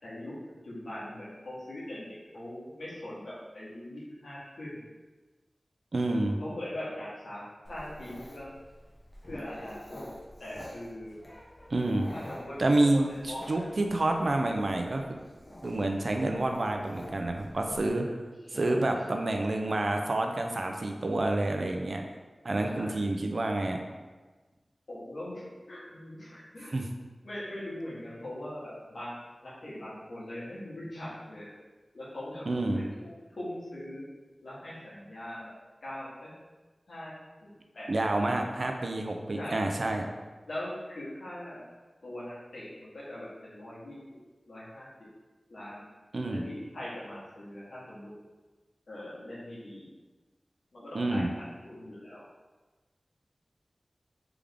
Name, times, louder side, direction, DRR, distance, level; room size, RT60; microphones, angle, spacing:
voice 1, 0.0-4.8 6.4-8.6 9.3-10.0 10.4-11.1 12.1-13.6 18.4-19.0 22.7-22.9 24.9-26.8 27.2-31.5 31.9-32.4 32.7-34.0 34.4-35.5 35.8-36.3 36.9-37.1 37.4-37.9 38.2-38.3 39.3-39.6 40.4-41.6 42.0-44.0 44.5-44.9 45.5-45.8 46.3-48.1 48.9-49.9 50.7-52.3, left 1 dB, 85° left, -8 dB, 1.4 m, -41 dB
voice 2, 5.9-6.4 11.7-12.1 12.6-15.1 15.6-18.0 18.6-22.0 22.4-23.8 26.7-26.8 32.5-32.8 37.9-40.1 46.1-46.4 50.9-51.3, right 2 dB, 65° right, 3 dB, 0.5 m, -28 dB
Dog, 7.6-17.9, left 1 dB, 30° left, 1.0 m, -47 dB
3.5 x 3.4 x 3.5 m, 1.3 s
wide cardioid pair, 60°, 0 cm